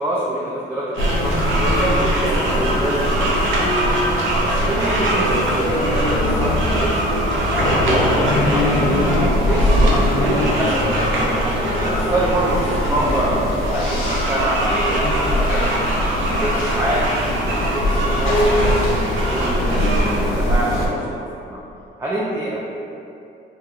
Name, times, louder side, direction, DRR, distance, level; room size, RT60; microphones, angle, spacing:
voice 1, 0.0-3.8 4.2-11.0 11.7-16.0 16.3-21.6 22.0-22.6, right 1 dB, 10° right, -6 dB, 0.4 m, -26 dB
sound 1, 0.9-20.2, right 1 dB, 80° right, 0.6 m, -25 dB
sound 2, 1.0-20.9, equal, 90° left, 0.6 m, -21 dB
4.4 x 2.2 x 2.4 m, 2.7 s
cardioid pair, 90°, 20 cm